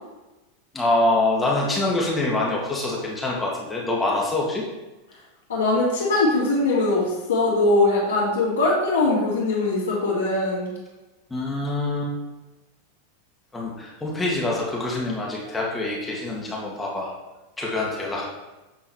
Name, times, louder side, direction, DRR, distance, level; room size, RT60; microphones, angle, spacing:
voice 1, 0.7-4.6 11.3-12.1 13.5-17.1 17.6-18.2, left 2 dB, 15° left, -3 dB, 1.8 m, -25 dB
voice 2, 5.5-10.7, left 2 dB, 80° left, -9 dB, 2.5 m, -21 dB
9.0 x 4.0 x 4.4 m, 1.1 s
hypercardioid pair, 95°, 0 cm